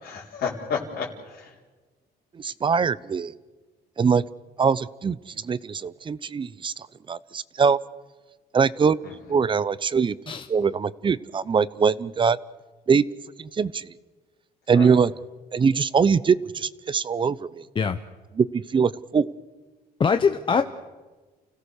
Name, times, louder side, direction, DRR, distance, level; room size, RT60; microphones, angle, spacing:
voice 1, 0.0-1.5 9.0-9.4 14.7-15.0 20.5-20.6, left 6 dB, 65° left, -4 dB, 3.8 m, -32 dB
voice 2, 2.4-3.3 4.0-4.2 4.6-5.2 5.4-7.8 8.5-9.0 9.3-10.1 10.5-12.4 12.9-13.0 13.4-13.8 14.7-15.1 15.5-17.6 18.4-19.3, right 6 dB, 30° right, 19 dB, 0.7 m, -22 dB
voice 3, 20.0-20.6, left 5 dB, 30° left, 8 dB, 0.8 m, -22 dB
30.0 x 16.5 x 6.5 m, 1.3 s
cardioid pair, 110°, 17 cm